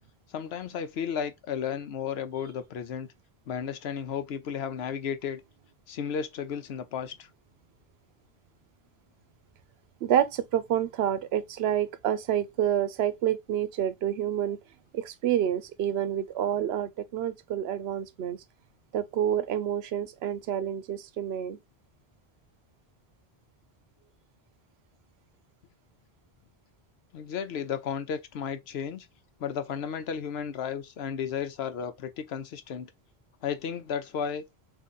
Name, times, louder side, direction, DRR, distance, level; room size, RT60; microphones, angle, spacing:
voice 1, 0.3-3.1 3.5-5.4 5.9-7.3 27.1-29.1 29.4-32.9 33.4-34.4, left 7 dB, 85° left, 0.9 m, -33 dB
voice 2, 10.0-14.6 14.9-18.4 18.9-21.6, right 10 dB, 90° right, 0.8 m, -28 dB
3.7 x 2.6 x 4.0 m
omnidirectional pair, 1.0 m